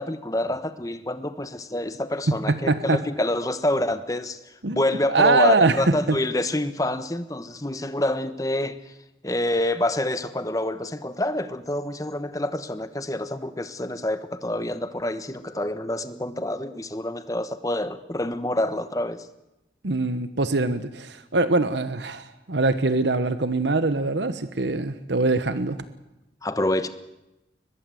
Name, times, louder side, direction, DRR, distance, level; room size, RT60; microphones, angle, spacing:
voice 1, 0.0-8.9 9.2-19.3 26.4-26.9, left 1 dB, 20° left, 11 dB, 1.2 m, -27 dB
voice 2, 2.3-3.0 4.6-4.8 5.1-6.2 19.8-25.8, right 3 dB, 75° right, 12 dB, 1.1 m, -23 dB
23.0 x 21.0 x 7.8 m, 0.95 s
head